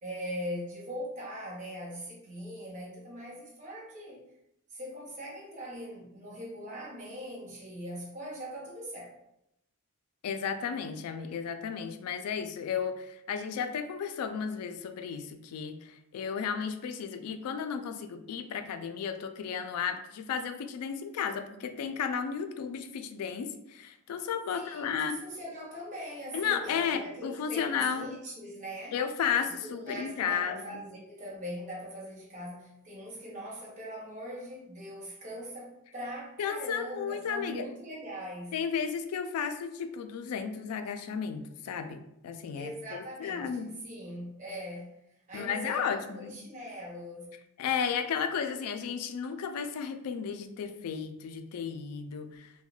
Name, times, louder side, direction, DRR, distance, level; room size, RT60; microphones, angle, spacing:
voice 1, 0.0-4.2 4.7-9.1 24.5-29.0 29.4-38.5 42.5-44.9 45.3-47.3, equal, 35° right, -4 dB, 0.8 m, -41 dB
voice 2, 10.2-25.2 26.3-28.1 28.9-30.8 36.4-37.6 38.5-43.7 45.3-46.4 47.6-52.5, left 7 dB, 90° left, 8 dB, 0.3 m, -33 dB
2.2 x 2.1 x 3.8 m, 0.82 s
head